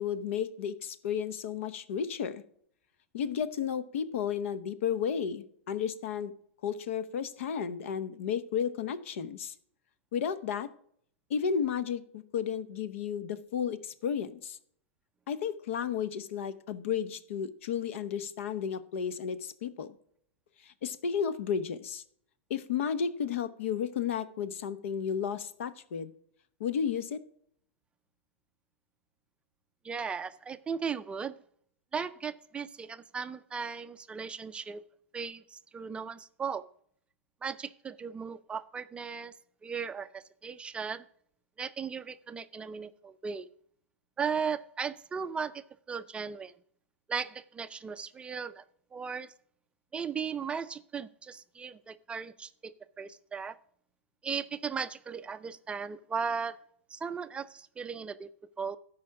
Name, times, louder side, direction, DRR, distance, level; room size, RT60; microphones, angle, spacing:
voice 1, 0.0-2.4 3.1-6.3 6.6-9.5 10.1-10.7 11.3-14.6 15.3-19.9 20.6-22.0 22.5-26.1 26.6-27.2, left 7 dB, 70° left, 15 dB, 0.9 m, -33 dB
voice 2, 29.8-31.3 31.9-34.8 35.1-36.7 37.4-39.3 39.6-41.1 41.6-43.5 44.2-46.5 47.1-48.6 48.9-49.3 49.9-53.6 54.2-56.6 56.9-58.3 58.6-58.8, right 6 dB, 15° right, 12 dB, 0.4 m, -37 dB
12.5 x 5.1 x 5.9 m, 0.63 s
hypercardioid pair, 120°, 7 cm